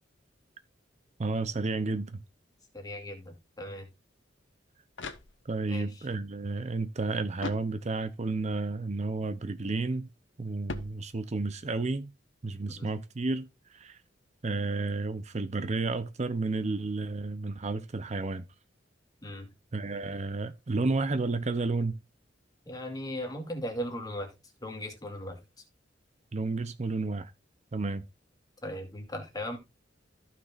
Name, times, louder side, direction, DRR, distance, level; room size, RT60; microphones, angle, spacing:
voice 1, 1.2-2.2 5.4-10.1 10.4-12.1 12.4-14.0 14.4-18.5 19.7-22.0 26.3-27.3 27.7-28.1, right 3 dB, 40° right, 0.6 m, -31 dB
voice 2, 2.7-3.9 5.7-5.9 12.7-12.9 19.2-19.5 22.7-24.3 24.6-25.4 28.6-29.6, equal, 20° left, 2.5 m, -37 dB
sound 1, 4.5-5.8 7.4-8.3 10.7-11.6, left 3 dB, 85° left, 1.0 m, -42 dB
15.0 x 5.9 x 2.5 m
head